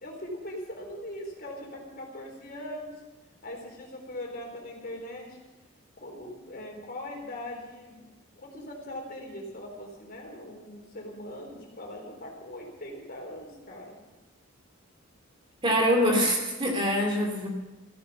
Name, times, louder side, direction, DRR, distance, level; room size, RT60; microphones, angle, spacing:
voice 1, 0.0-3.0 3.4-5.4 6.0-14.0, left 1 dB, 45° left, 1 dB, 4.0 m, -41 dB
voice 2, 15.6-17.5, equal, 25° right, 1 dB, 2.7 m, -24 dB
15.5 x 9.6 x 8.5 m, 1.1 s
head